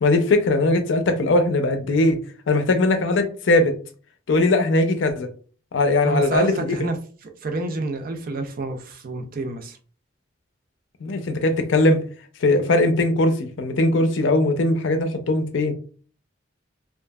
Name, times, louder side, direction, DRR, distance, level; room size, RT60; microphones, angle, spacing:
voice 1, 0.0-2.2 2.5-3.7 4.3-5.3 5.7-6.8 11.0-12.0 12.4-15.7, left 2 dB, 75° left, 0.5 m, -20 dB
voice 2, 6.0-7.0 7.2-9.8, right 2 dB, 50° right, 0.4 m, -28 dB
2.8 x 2.4 x 2.3 m
head